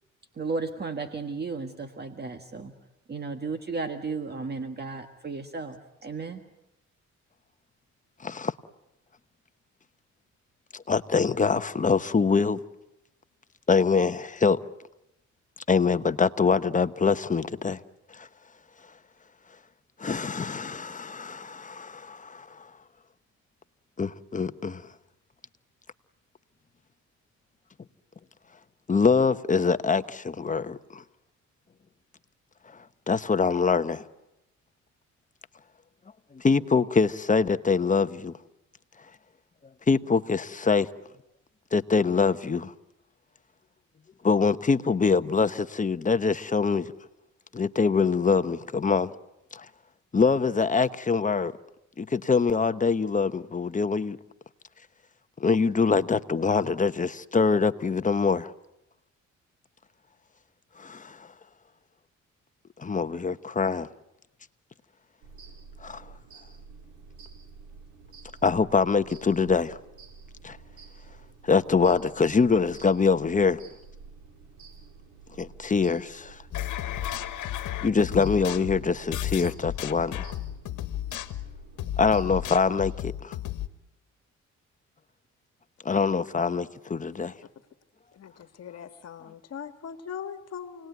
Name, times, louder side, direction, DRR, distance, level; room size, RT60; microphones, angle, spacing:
voice 1, 0.3-2.7 3.1-6.4, right 4 dB, 35° right, 1.7 m, -34 dB
voice 2, 8.2-8.5 10.7-12.6 13.7-14.6 15.7-17.8 18.1-18.3 20.0-22.5 24.0-24.8 28.9-31.0 33.1-34.0 36.3-38.3 39.9-40.9 41.7-42.7 44.2-46.9 47.5-49.1 49.5-49.7 50.1-51.5 52.0-54.2 55.4-58.5 60.8-61.2 62.8-63.9 65.8-66.0 68.4-69.8 70.4-70.6 71.4-73.6 75.4-76.4 77.8-80.3 82.0-83.3 85.8-87.3, left 5 dB, 25° left, 1.0 m, -24 dB
sound 1, 65.2-83.0, right 4 dB, 80° right, 4.6 m, -49 dB
sound 2, 76.5-83.7, left 12 dB, 80° left, 1.4 m, -34 dB
voice 3, 88.1-90.9, left 7 dB, 55° left, 1.7 m, -40 dB
28.5 x 19.5 x 9.3 m
cardioid pair, 90°, 30 cm